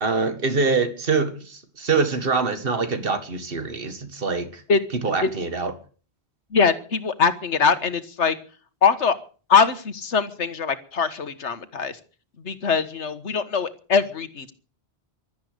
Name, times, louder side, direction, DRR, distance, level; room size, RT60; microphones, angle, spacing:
voice 1, 0.0-4.6 5.0-5.7, right 4 dB, 55° right, 9 dB, 2.1 m, -24 dB
voice 2, 6.5-8.4 8.8-9.2 9.5-12.0 12.4-14.5, left 5 dB, 90° left, 12 dB, 1.7 m, -22 dB
17.0 x 12.5 x 6.7 m, 0.40 s
omnidirectional pair, 1.1 m